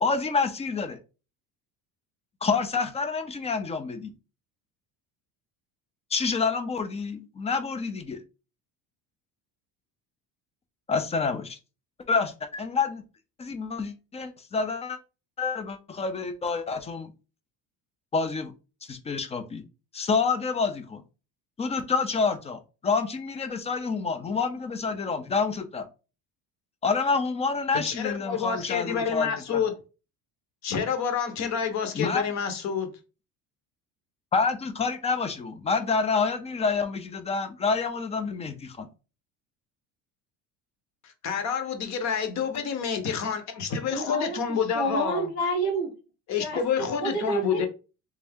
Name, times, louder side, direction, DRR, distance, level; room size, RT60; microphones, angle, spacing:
voice 1, 0.0-1.0 2.4-4.1 6.1-8.2 10.9-11.6 12.1-13.0 13.4-15.0 15.4-17.1 18.1-18.5 18.8-19.6 19.9-21.0 21.6-25.9 26.8-29.6 31.9-32.2 34.3-38.9, left 4 dB, 20° left, 9 dB, 0.4 m, -28 dB
voice 2, 27.7-29.7 30.6-32.9 41.0-45.3 46.3-47.7, left 7 dB, 45° left, 7 dB, 0.9 m, -28 dB
voice 3, 43.9-44.4 44.7-45.9 46.4-46.6 47.0-47.7, right 2 dB, 90° left, 1 dB, 2.0 m, -28 dB
3.4 x 2.6 x 3.4 m, 0.32 s
cardioid pair, 145°, 37 cm